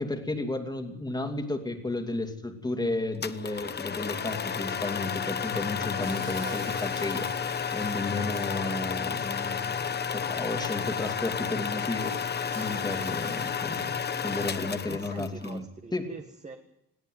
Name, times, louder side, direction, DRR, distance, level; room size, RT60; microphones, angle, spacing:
voice 1, 0.0-7.3 7.7-12.1 12.5-15.6 15.9-16.1, left 2 dB, 10° left, 6 dB, 2.7 m, -33 dB
sound 1, 3.2-15.5, left 7 dB, 30° left, 1.1 m, -32 dB
Shatter, 6.0-8.6 10.4-10.5 11.0-11.1 11.7-14.0 14.8-15.1, right 7 dB, 80° right, 5.5 m, -51 dB
voice 2, 14.9-16.6, right 4 dB, 20° right, 5 dB, 1.6 m, -43 dB
21.5 x 17.0 x 9.3 m, 0.83 s
cardioid pair, 160°, 32 cm